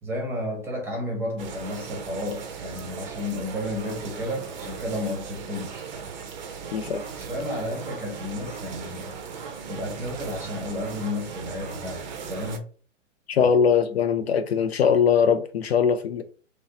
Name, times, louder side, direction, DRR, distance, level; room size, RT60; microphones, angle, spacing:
voice 1, 0.0-5.9 7.2-12.7 13.3-13.5 13.9-14.0, left 1 dB, 5° right, 0.9 m, -32 dB
sound 1, 1.4-12.6, right 6 dB, 35° right, 0.6 m, -38 dB
voice 2, 6.7-7.0 13.3-16.2, left 7 dB, 55° left, 0.4 m, -21 dB
3.1 x 2.6 x 2.9 m
hypercardioid pair, 125°, 37 cm